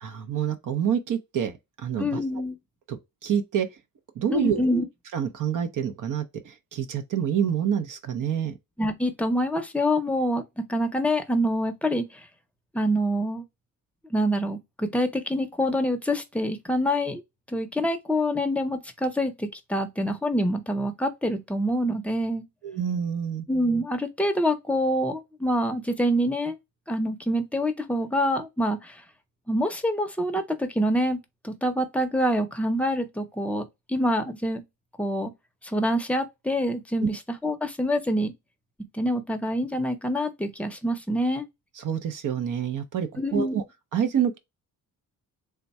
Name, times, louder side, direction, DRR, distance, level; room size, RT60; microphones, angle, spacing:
voice 1, 0.0-2.2 2.9-3.7 4.2-4.7 5.1-8.5 22.6-23.4 37.0-37.1 41.8-43.6 43.9-44.4, right 8 dB, 65° right, 0.7 m, -27 dB
voice 2, 2.0-2.6 4.3-4.8 8.8-12.3 12.7-13.4 14.1-17.2 17.5-22.4 23.5-26.6 26.9-29.0 29.5-31.2 31.4-34.6 35.0-35.3 35.6-38.3 38.9-41.5 43.2-43.5, equal, 5° left, 0.6 m, -26 dB
3.5 x 2.2 x 4.1 m
cardioid pair, 130°, 34 cm